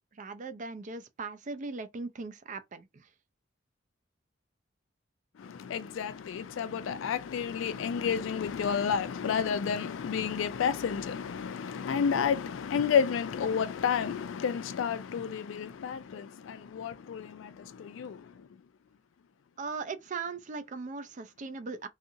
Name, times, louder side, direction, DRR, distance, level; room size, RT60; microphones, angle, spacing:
voice 1, 0.0-3.1 19.6-21.9, right 4 dB, 40° right, 0.4 m, -39 dB
voice 2, 5.4-18.5, left 7 dB, 85° left, 0.3 m, -31 dB
2.7 x 2.5 x 2.6 m
head